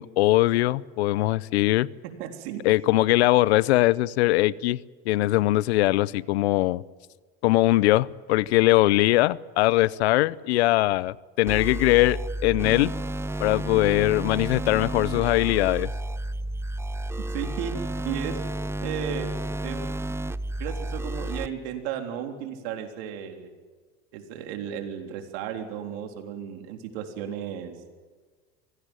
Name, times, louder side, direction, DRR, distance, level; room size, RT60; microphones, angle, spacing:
voice 1, 0.0-1.9 2.6-4.8 5.1-6.8 7.4-12.9 13.4-15.9, left 18 dB, 80° left, 0.7 m, -21 dB
voice 2, 2.0-2.6 17.3-17.7 18.0-18.4 18.8-19.9 20.6-23.5 24.1-27.8, right 9 dB, 70° right, 3.8 m, -34 dB
sound 1, 11.5-21.5, right 1 dB, 10° right, 0.6 m, -31 dB
25.0 x 17.0 x 9.1 m
supercardioid pair, 115°, 32 cm